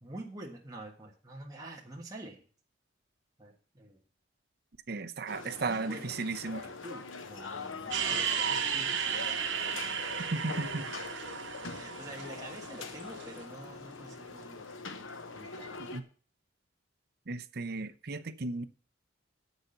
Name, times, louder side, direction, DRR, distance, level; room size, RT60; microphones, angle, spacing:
voice 1, 0.0-2.4 3.4-4.0 5.6-9.3 11.7-14.7 15.3-15.9, right 2 dB, 20° right, 1.5 m, -47 dB
voice 2, 4.9-6.7 10.2-10.9 15.9-16.0 17.3-18.6, right 3 dB, 55° right, 0.8 m, -35 dB
sound 1, 5.3-16.0, left 4 dB, 90° left, 1.1 m, -43 dB
sound 2, 7.9-13.3, right 7 dB, 75° right, 1.4 m, -34 dB
8.2 x 6.5 x 6.6 m
head